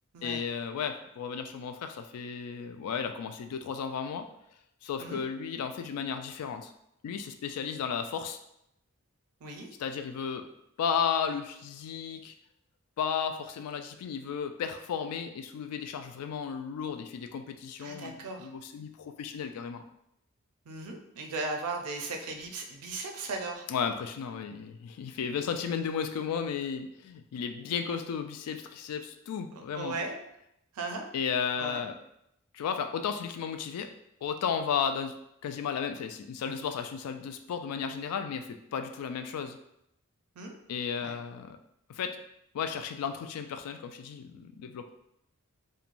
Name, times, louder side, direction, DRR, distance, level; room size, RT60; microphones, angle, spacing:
voice 1, 0.2-4.3 4.8-6.7 7.0-8.4 9.8-10.5 10.8-12.3 13.0-19.8 23.7-30.0 31.1-32.0 32.5-33.9 34.2-35.2 35.4-39.6 40.7-41.6 41.9-42.2 42.5-44.9, left 7 dB, 85° left, 12 dB, 0.3 m, -34 dB
voice 2, 17.8-18.5 20.7-23.7 29.6-30.2 30.7-31.1 31.6-31.8 40.4-40.6 41.0-41.1, right 3 dB, 80° right, 3 dB, 0.4 m, -37 dB
3.0 x 2.2 x 2.5 m, 0.79 s
head